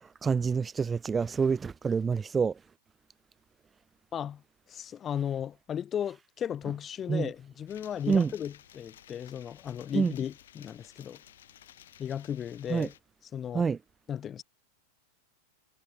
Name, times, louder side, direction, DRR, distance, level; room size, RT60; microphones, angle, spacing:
voice 1, 0.2-2.5 7.1-7.3 8.1-8.3 9.9-10.1 12.7-12.9 13.5-13.8, right 5 dB, 15° right, 0.5 m, -27 dB
voice 2, 4.1-4.4 4.7-11.2 12.0-12.9 13.3-13.7 14.1-14.4, left 9 dB, 25° left, 0.9 m, -35 dB
sound 1, 7.7-13.0, left 11 dB, 60° left, 6.9 m, -55 dB
figure-of-eight pair, 90°, 0 cm